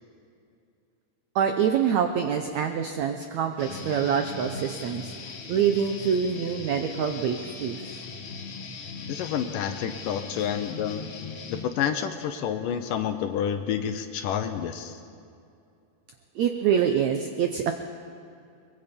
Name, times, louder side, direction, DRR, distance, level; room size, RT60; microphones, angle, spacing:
voice 1, 1.3-5.1 5.5-8.0 16.3-17.7, right 8 dB, 85° right, 6 dB, 1.6 m, -25 dB
Guitar, 3.6-11.6, left 4 dB, 55° left, 2.8 m, -39 dB
voice 2, 9.1-11.0 11.5-15.0, left 9 dB, 75° left, 8 dB, 2.2 m, -29 dB
22.0 x 22.0 x 5.3 m, 2.5 s
omnidirectional pair, 4.4 m